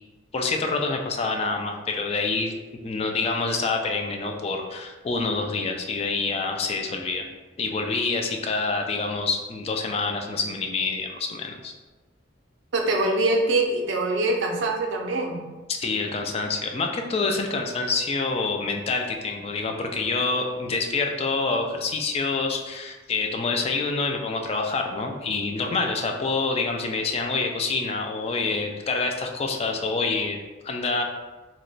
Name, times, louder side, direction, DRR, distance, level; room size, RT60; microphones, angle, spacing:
voice 1, 0.3-2.5 2.8-7.2 7.6-11.7 15.7-30.4 30.6-31.0, left 3 dB, 30° left, 3 dB, 0.3 m, -27 dB
voice 2, 12.7-15.4, right 2 dB, 80° right, 2 dB, 0.5 m, -23 dB
2.9 x 2.1 x 3.9 m, 1.2 s
head